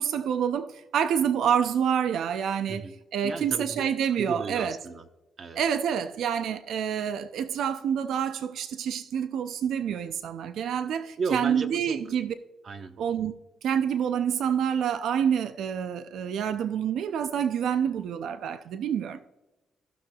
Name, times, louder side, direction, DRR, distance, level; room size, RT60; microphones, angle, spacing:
voice 1, 0.0-2.9 3.1-4.7 5.6-12.3 13.0-13.3 13.6-19.2, right 8 dB, 80° right, 0.4 m, -27 dB
voice 2, 3.2-3.8 4.1-5.1 5.4-5.6 11.2-12.2 12.6-13.0, right 4 dB, 55° right, 0.9 m, -34 dB
15.5 x 6.0 x 2.3 m
cardioid pair, 70°, 0 cm